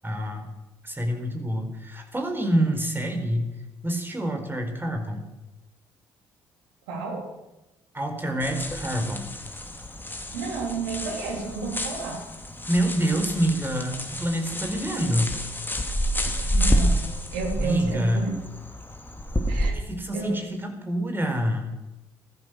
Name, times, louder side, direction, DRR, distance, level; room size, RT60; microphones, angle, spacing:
voice 1, 0.0-0.5 0.8-3.6 3.8-5.3 7.9-9.3 12.7-15.4 17.6-18.3 19.5-21.7, equal, 15° right, 4 dB, 4.3 m, -27 dB
voice 2, 6.9-7.3 10.3-12.2 16.2-17.0 17.3-18.3 19.5-19.8 20.1-20.4, right 4 dB, 75° right, 2 dB, 3.1 m, -30 dB
sound 1, 8.4-19.7, equal, 15° left, 2.7 m, -29 dB
16.5 x 13.0 x 6.4 m, 1.0 s
hypercardioid pair, 45°, 12 cm